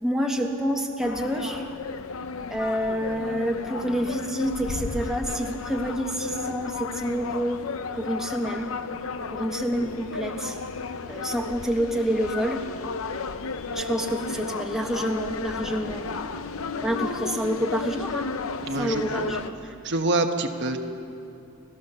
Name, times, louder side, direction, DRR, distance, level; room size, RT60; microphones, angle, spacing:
voice 1, 0.0-1.6 2.5-7.6 7.9-8.7 9.3-10.6 11.1-12.6 13.7-16.1 16.8-18.3 18.8-19.4, equal, ahead, 1 dB, 1.4 m, -28 dB
sound 1, 1.0-19.5, left 4 dB, 70° left, 0.8 m, -33 dB
voice 2, 18.7-19.4 19.8-20.8, right 2 dB, 55° right, 5 dB, 1.3 m, -26 dB
29.0 x 14.0 x 6.9 m, 2.7 s
head